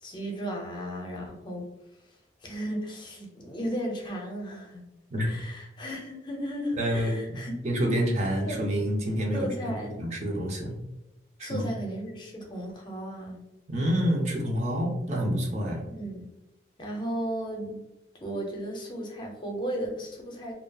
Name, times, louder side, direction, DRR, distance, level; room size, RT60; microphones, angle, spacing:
voice 1, 0.0-1.7 2.4-4.8 5.2-7.5 8.4-8.6 9.3-10.0 11.4-13.4 15.9-16.2 16.8-17.8 18.2-20.6, equal, 25° left, 0 dB, 0.5 m, -35 dB
voice 2, 6.8-10.8 11.4-11.7 13.7-15.9, equal, 40° right, 0 dB, 0.4 m, -28 dB
2.7 x 2.2 x 2.2 m, 0.93 s
head